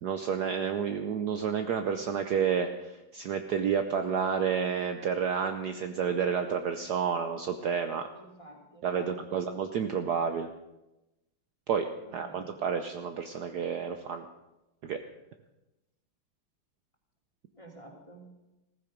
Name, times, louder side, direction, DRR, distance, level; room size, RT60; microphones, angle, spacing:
voice 1, 0.0-8.1 8.8-10.5 11.7-14.3 14.8-15.0, right 7 dB, 60° right, 7 dB, 1.2 m, -30 dB
voice 2, 8.1-9.5 12.1-12.5 17.5-18.3, right 2 dB, 15° left, 0 dB, 2.6 m, -50 dB
15.5 x 14.5 x 5.2 m, 0.97 s
omnidirectional pair, 2.2 m